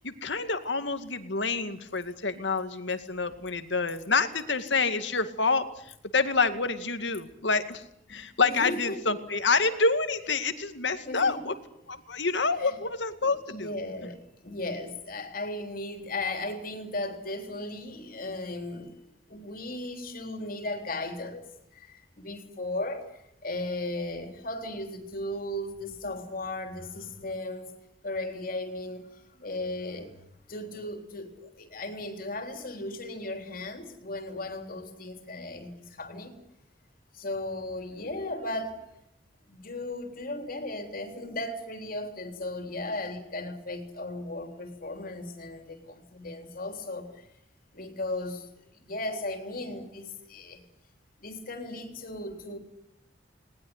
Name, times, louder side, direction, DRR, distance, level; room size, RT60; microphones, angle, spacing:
voice 1, 0.0-7.8 8.1-11.5 11.9-13.7, left 4 dB, 75° left, 10 dB, 2.2 m, -28 dB
voice 2, 8.1-9.1 11.1-11.5 12.6-12.8 13.2-19.0 19.3-21.5 21.7-27.7 28.0-30.2 30.5-36.4 37.1-38.9 39.5-47.3 47.7-50.6 51.2-52.6, left 2 dB, 50° left, 6 dB, 3.6 m, -36 dB
21.0 x 20.0 x 9.8 m, 0.78 s
head